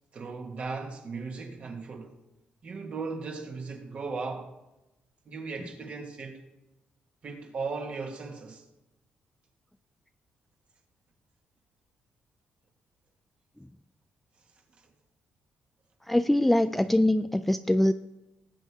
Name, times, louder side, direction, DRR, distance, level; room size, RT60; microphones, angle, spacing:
voice 1, 0.1-2.2 2.6-4.5 5.2-6.4 7.2-8.6, right 4 dB, 40° right, 1.7 m, -37 dB
voice 2, 16.1-17.9, left 1 dB, 5° left, 0.3 m, -23 dB
19.0 x 8.4 x 3.6 m
cardioid pair, 145°, 3 cm